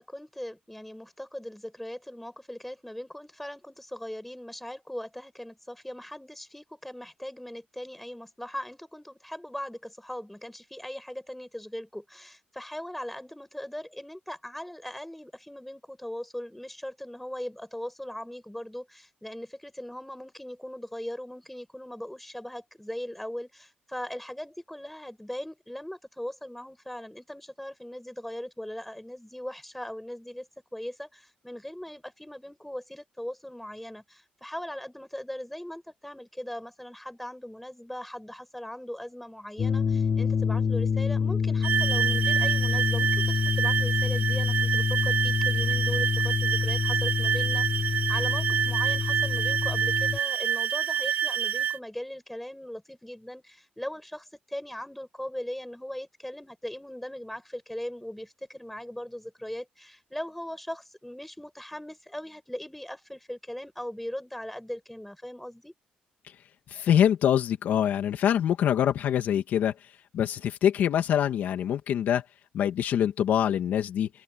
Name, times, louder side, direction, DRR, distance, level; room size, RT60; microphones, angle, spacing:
voice 1, 0.0-65.7, left 1 dB, 5° left, 6.4 m, -39 dB
sound 1, 39.6-50.2, left 6 dB, 40° left, 3.2 m, -27 dB
sound 2, 41.6-51.8, right 9 dB, 70° right, 0.5 m, -27 dB
voice 2, 66.7-69.7 70.1-72.2 72.5-74.1, left 10 dB, 75° left, 2.3 m, -24 dB
open air
cardioid pair, 135°, 3 cm